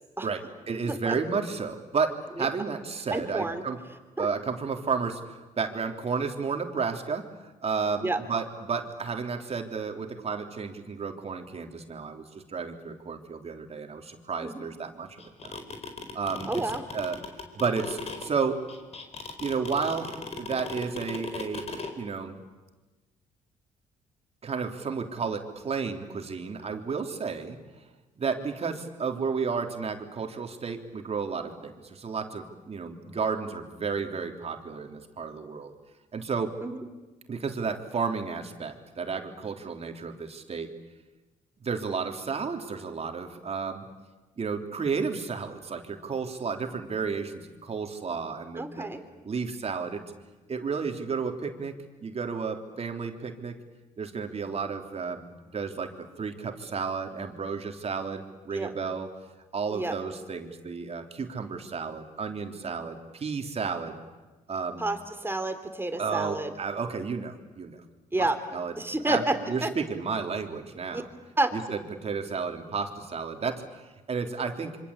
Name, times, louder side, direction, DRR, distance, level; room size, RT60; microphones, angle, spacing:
voice 1, 0.2-3.8 4.2-7.3 7.6-15.6 16.1-17.2 17.5-18.6 19.4-21.7 22.0-22.4 24.4-27.6 28.2-35.7 36.1-36.6 37.3-40.7 41.6-43.8 44.4-48.9 49.2-50.0 50.5-51.7 52.0-53.6 54.0-55.3 55.5-59.1 59.5-64.0 64.5-64.9 66.0-67.8 68.2-68.7 69.0-71.1 71.5-74.8, right 5 dB, 40° right, 5 dB, 3.4 m, -32 dB
voice 2, 0.8-1.1 2.4-2.5 3.1-3.6 4.2-4.3 8.0-8.2 14.4-14.6 16.5-16.8 36.6-36.8 48.6-49.0 58.5-58.7 59.7-60.0 64.8-66.5 68.1-68.4 68.8-69.7 70.9-71.0 71.4-71.5, right 2 dB, 15° right, 8 dB, 3.6 m, -29 dB
sound 1, 15.2-21.9, left 4 dB, 45° left, 4.4 m, -37 dB
26.5 x 25.0 x 8.5 m, 1.2 s
supercardioid pair, 70°, 15 cm